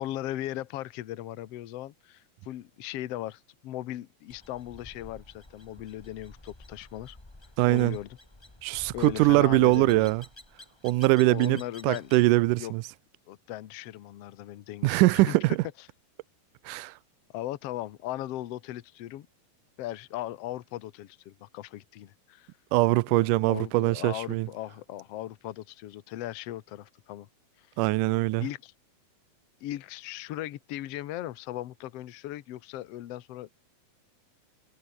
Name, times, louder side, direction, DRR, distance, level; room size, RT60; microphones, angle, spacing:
voice 1, 0.0-7.2 7.7-8.1 8.9-10.1 11.3-12.1 12.6-12.7 13.3-15.4 17.3-19.3 19.8-22.5 23.1-27.3 27.6-27.7 28.4-28.7 29.6-33.5, left 14 dB, 85° left, 1.4 m, -38 dB
sound 1, 4.3-12.3, left 2 dB, 15° left, 0.8 m, -51 dB
voice 2, 7.6-8.0 8.6-10.2 10.8-12.8 14.8-15.6 16.7-16.9 22.7-24.5 27.8-28.5, right 19 dB, 85° right, 1.9 m, -22 dB
omnidirectional pair, 4.4 m